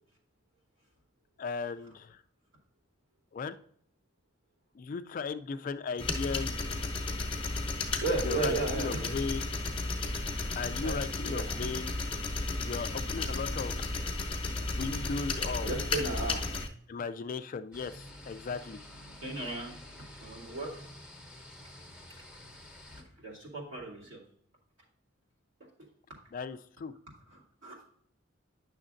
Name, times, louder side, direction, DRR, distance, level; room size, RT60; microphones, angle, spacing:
voice 1, 1.4-2.2 3.3-3.6 4.7-6.6 7.0-7.2 8.2-9.5 10.6-11.9 12.6-13.7 14.7-15.7 16.9-18.8 26.3-26.9, left 5 dB, 45° left, 10 dB, 0.3 m, -37 dB
sound 1, 6.0-16.7, left 3 dB, 30° left, 0.8 m, -33 dB
voice 2, 8.0-9.2 10.0-10.1 10.8-11.5 15.6-16.5 19.2-19.8 20.2-20.9 22.9-24.2 25.6-25.7 27.3-27.7, right 2 dB, 65° right, -4 dB, 2.6 m, -35 dB
sound 2, 17.7-23.0, left 1 dB, 5° right, 0.9 m, -50 dB
9.8 x 6.4 x 2.5 m, 0.64 s
head